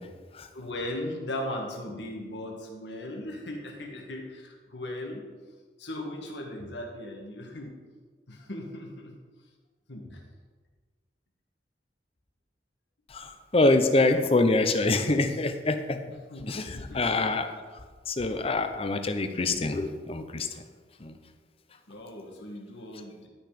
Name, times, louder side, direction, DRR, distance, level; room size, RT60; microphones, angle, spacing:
voice 1, 0.5-5.2 5.8-7.7 8.3-9.1 9.9-10.2 16.3-17.1 21.9-23.3, left 1 dB, 80° left, 1 dB, 1.9 m, -38 dB
voice 2, 13.1-16.0 16.5-17.5 18.1-20.5 21.0-21.1, left 2 dB, 35° left, 8 dB, 0.7 m, -25 dB
12.0 x 5.9 x 5.1 m, 1.4 s
head